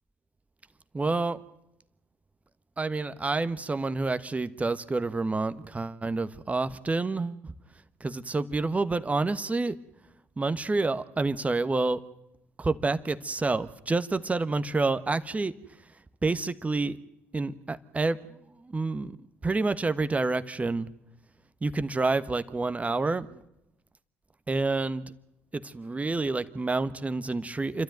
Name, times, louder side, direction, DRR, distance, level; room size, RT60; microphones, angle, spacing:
voice 1, 0.9-1.4 2.8-7.5 8.0-9.7 10.4-12.0 12.6-15.5 16.2-17.0 17.3-18.3 18.6-19.2 19.4-20.9 21.6-23.4 24.5-25.0 25.5-27.8, right 3 dB, 20° right, 13 dB, 1.3 m, -28 dB
29.0 x 13.0 x 9.2 m, 0.86 s
figure-of-eight pair, 55°, 7 cm